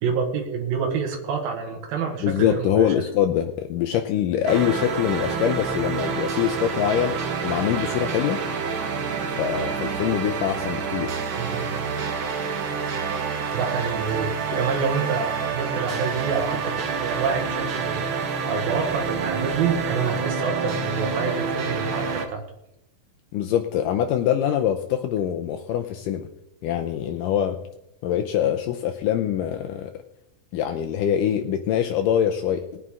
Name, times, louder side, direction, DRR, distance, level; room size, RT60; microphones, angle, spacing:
voice 1, 0.0-2.9 11.4-11.7 13.5-18.1 18.5-22.4, right 5 dB, 90° right, 2 dB, 3.4 m, -27 dB
voice 2, 2.2-8.4 9.4-11.2 23.3-26.3 26.6-27.6 28.0-29.9 30.5-32.8, left 10 dB, 80° left, 4 dB, 2.2 m, -24 dB
sound 1, 4.5-22.3, right 5 dB, 65° right, 1.2 m, -28 dB
19.5 x 9.4 x 3.7 m, 0.82 s
omnidirectional pair, 4.0 m